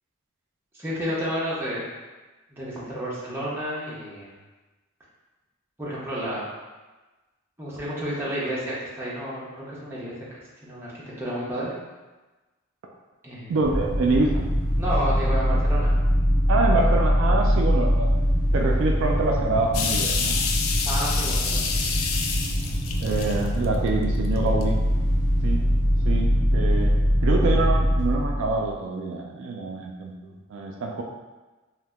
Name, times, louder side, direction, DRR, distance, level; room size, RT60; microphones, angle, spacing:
voice 1, 0.8-1.8 2.6-4.3 5.8-6.4 7.6-10.3 10.6-10.9 11.2-11.7 13.2-13.5 14.8-15.9 20.8-21.9 22.2-22.3, equal, 10° right, -8 dB, 0.7 m, -31 dB
voice 2, 13.5-14.4 16.5-18.1 18.5-20.4 23.0-24.8 25.4-26.9 27.2-31.0, right 3 dB, 65° right, 0 dB, 0.3 m, -26 dB
sound 1, 13.6-28.7, equal, 40° left, 0.8 m, -23 dB
sound 2, 19.7-23.9 24.4-24.6, left 5 dB, 80° left, 0.4 m, -28 dB
2.7 x 2.1 x 3.4 m, 1.2 s
head